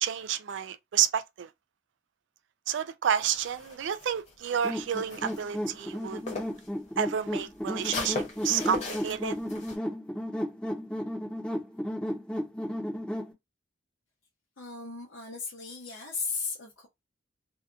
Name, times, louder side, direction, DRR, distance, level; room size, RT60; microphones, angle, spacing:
voice 1, 0.0-1.5 2.7-6.2 7.0-9.4, right 8 dB, 60° right, 0.3 m, -30 dB
sound 1, 3.1-6.7 7.0-9.8, left 3 dB, 35° left, 0.9 m, -39 dB
sound 2, 4.6-13.3, equal, 5° left, 0.6 m, -34 dB
voice 2, 14.6-16.9, left 4 dB, 65° left, 0.7 m, -36 dB
2.7 x 2.2 x 2.4 m
head